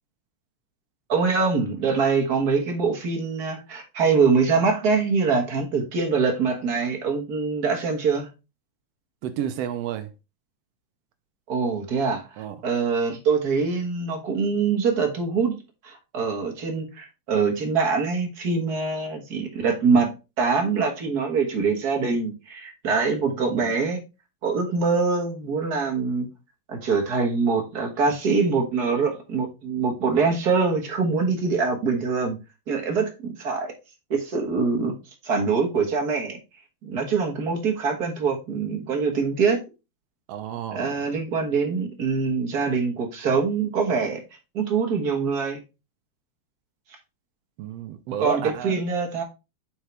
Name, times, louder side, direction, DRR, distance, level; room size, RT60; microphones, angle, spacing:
voice 1, 1.1-8.3 11.5-15.5 15.8-20.1 20.4-24.0 24.4-26.3 26.7-32.3 32.7-33.7 34.1-34.9 35.2-36.4 36.8-39.6 40.7-44.2 44.5-45.6 48.2-49.2, right 5 dB, 40° right, 1.6 m, -24 dB
voice 2, 9.2-10.1 12.4-12.6 23.4-23.7 40.3-41.0 47.6-48.7, right 10 dB, 75° right, 1.6 m, -31 dB
7.8 x 4.7 x 3.4 m
omnidirectional pair, 3.3 m